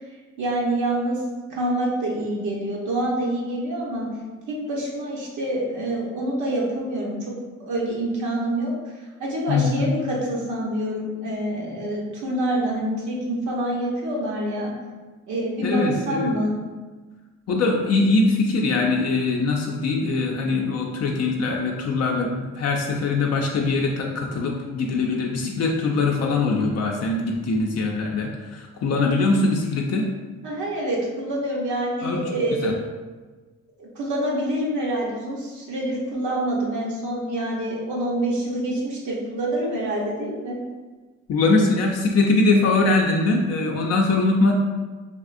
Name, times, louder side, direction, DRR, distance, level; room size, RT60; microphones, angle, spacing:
voice 1, 0.4-1.2 1.5-4.1 4.5-7.3 7.6-8.7 9.2-14.7 15.3-16.5 30.4-32.7 33.8-40.6, right 1 dB, 75° right, -4 dB, 0.9 m, -26 dB
voice 2, 9.5-9.9 15.6-16.3 17.5-30.1 32.0-32.2 32.6-32.7 41.3-44.5, left 3 dB, 55° left, 0 dB, 0.5 m, -22 dB
3.4 x 2.5 x 2.4 m, 1.3 s
cardioid pair, 90°, 30 cm